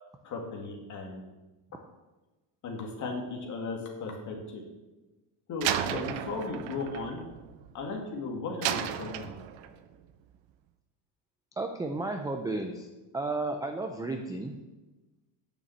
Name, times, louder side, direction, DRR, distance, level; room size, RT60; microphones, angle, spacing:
voice 1, 0.2-1.2 2.6-4.6 5.5-7.2 7.7-9.3, left 3 dB, 40° left, 0 dB, 2.2 m, -36 dB
Slam, 5.6-8.0 8.6-9.8, right 11 dB, 75° right, 0.9 m, -34 dB
voice 2, 5.7-6.1 11.6-12.9 13.1-14.5, right 2 dB, 10° right, 4 dB, 0.3 m, -33 dB
9.1 x 6.7 x 7.2 m, 1.1 s
cardioid pair, 170°, 46 cm